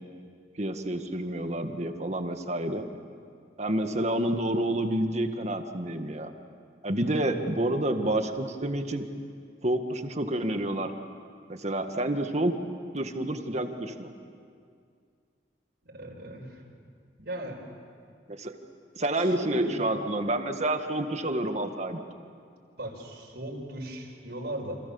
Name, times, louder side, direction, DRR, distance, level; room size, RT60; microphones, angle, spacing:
voice 1, 0.6-2.8 3.6-6.3 6.8-9.1 9.6-10.9 11.5-12.5 12.9-14.1 18.3-18.5 19.0-22.0, right 1 dB, 40° right, 6 dB, 1.8 m, -29 dB
voice 2, 15.8-16.6 17.2-17.6 19.2-19.8 22.8-24.8, right 1 dB, 70° right, -1 dB, 5.0 m, -38 dB
29.5 x 27.0 x 7.1 m, 2.2 s
head